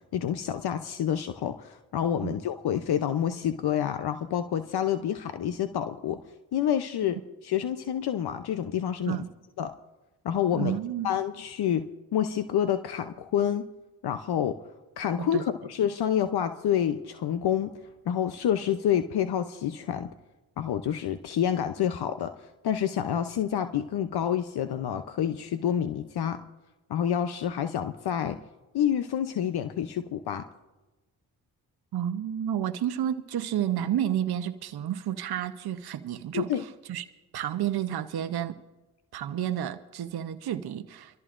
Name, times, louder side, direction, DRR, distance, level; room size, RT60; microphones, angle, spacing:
voice 1, 0.1-6.2 6.5-7.2 7.4-9.2 9.6-9.7 10.2-10.8 11.0-11.9 12.1-13.7 14.0-14.6 15.0-17.7 18.1-20.1 20.6-22.3 22.6-26.4 26.9-28.4 28.7-30.4 36.3-36.6, left 9 dB, 70° left, 9 dB, 0.8 m, -28 dB
voice 2, 10.5-11.1 15.2-15.4 31.9-37.1 37.3-38.6 39.1-41.2, right 10 dB, 70° right, 9 dB, 0.8 m, -31 dB
24.5 x 14.0 x 2.5 m, 1.1 s
supercardioid pair, 50°, 40 cm